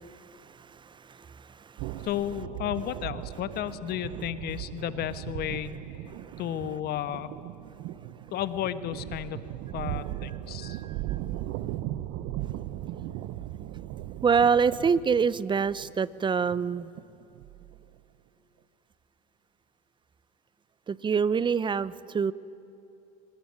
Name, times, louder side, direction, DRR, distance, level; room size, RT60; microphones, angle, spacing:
voice 1, 0.0-2.1 6.1-6.4 10.6-11.2 14.2-16.9 20.9-22.3, right 6 dB, 25° right, 19 dB, 0.8 m, -27 dB
sound 1, 1.8-17.9, right 14 dB, 60° right, 1.0 m, -38 dB
voice 2, 2.0-5.8 6.4-7.3 8.3-10.8, left 12 dB, 50° left, 13 dB, 1.4 m, -33 dB
24.5 x 19.5 x 9.9 m, 2.9 s
hypercardioid pair, 85°, 20 cm